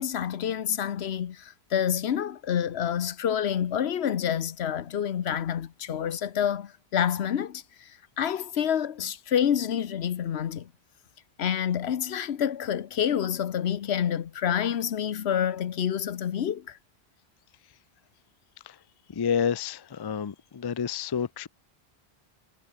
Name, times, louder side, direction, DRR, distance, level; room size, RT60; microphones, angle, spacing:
voice 1, 0.0-7.9 8.2-10.7 11.4-16.8, left 9 dB, 80° left, 1.1 m, -28 dB
voice 2, 19.1-21.5, left 7 dB, 35° left, 0.4 m, -29 dB
omnidirectional pair, 1.1 m